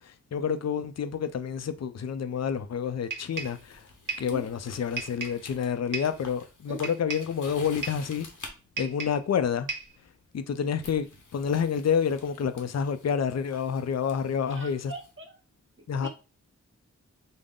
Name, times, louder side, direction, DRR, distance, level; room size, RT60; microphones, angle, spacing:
voice 1, 0.0-3.8 4.2-8.3 8.8-9.7 10.3-11.1 11.3-14.9 15.9-16.1, left 7 dB, 55° left, 0.4 m, -28 dB
sound 1, 3.1-3.6 4.1-4.3 5.0-5.4 5.9-6.2 6.8-7.3 7.8-8.1 8.8-9.3 9.7-10.0, right 4 dB, 90° right, 0.9 m, -35 dB
sound 2, 3.3-8.5 9.8-10.0 10.8-15.1, left 3 dB, 75° left, 0.9 m, -49 dB
voice 2, 14.5-15.4 16.0-16.1, right 1 dB, 40° right, 1.0 m, -40 dB
3.7 x 2.1 x 3.6 m
wide cardioid pair, 45°, 31 cm